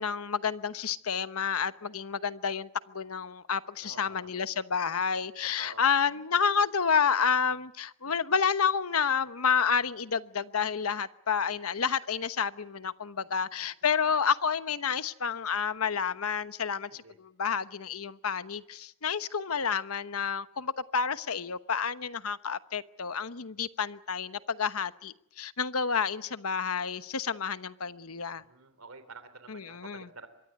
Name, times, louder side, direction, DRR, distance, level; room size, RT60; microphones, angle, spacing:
voice 1, 0.0-28.4 29.5-30.1, left 6 dB, 85° left, 1.0 m, -30 dB
voice 2, 3.8-4.3 5.4-5.9 13.2-13.3 14.0-14.1 16.9-17.1 28.3-30.3, right 3 dB, 90° right, 3.2 m, -49 dB
25.0 x 22.5 x 9.4 m
head